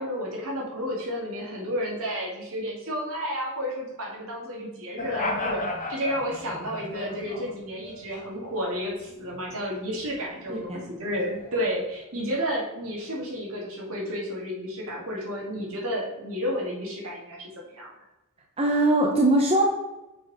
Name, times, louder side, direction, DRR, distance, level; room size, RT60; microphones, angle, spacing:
voice 1, 0.0-17.9, equal, 65° right, -3 dB, 2.3 m, -31 dB
sound 1, 5.0-8.3 8.7-10.2 10.5-12.0, left 2 dB, 35° left, 1.2 m, -35 dB
voice 2, 10.5-10.9 18.6-19.7, right 1 dB, 25° right, 1 dB, 0.7 m, -21 dB
6.2 x 4.7 x 4.8 m, 1.0 s
head